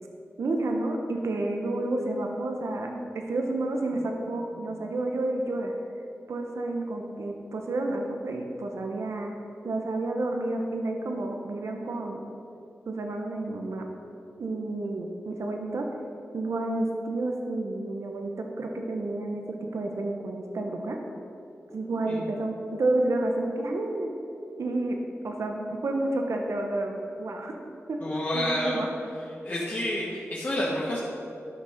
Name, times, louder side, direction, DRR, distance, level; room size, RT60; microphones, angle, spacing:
voice 1, 0.4-5.7 6.3-9.3 9.6-12.2 12.9-13.9 14.4-15.9 16.3-21.0 21.7-24.1 24.6-25.0 25.2-27.6 27.9-28.0 28.3-28.9, right 2 dB, 85° right, 2 dB, 0.9 m, -30 dB
voice 2, 22.0-22.3 28.0-28.8 29.4-31.0, left 1 dB, 40° left, -6 dB, 1.6 m, -29 dB
12.5 x 6.3 x 5.8 m, 2.8 s
wide cardioid pair, 115°, 5 cm